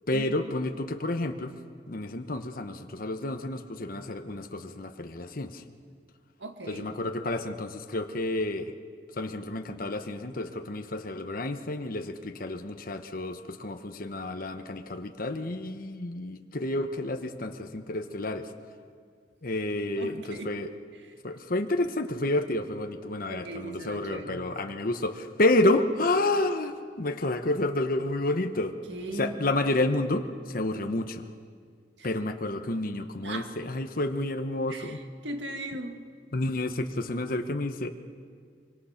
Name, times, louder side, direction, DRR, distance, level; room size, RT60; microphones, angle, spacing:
voice 1, 0.1-1.5 1.9-5.6 6.7-8.7 9.2-18.5 19.4-20.7 21.2-28.7 29.2-31.2 32.0-35.0 36.3-37.9, left 2 dB, 55° left, 6 dB, 1.1 m, -30 dB
voice 2, 6.4-6.9 19.5-19.6 20.0-20.6 21.1-21.2 23.3-24.5 28.9-29.5 32.0-32.1 33.2-33.6 34.7-36.0, right 1 dB, 85° right, 5 dB, 2.0 m, -38 dB
25.0 x 24.0 x 5.9 m, 2.1 s
head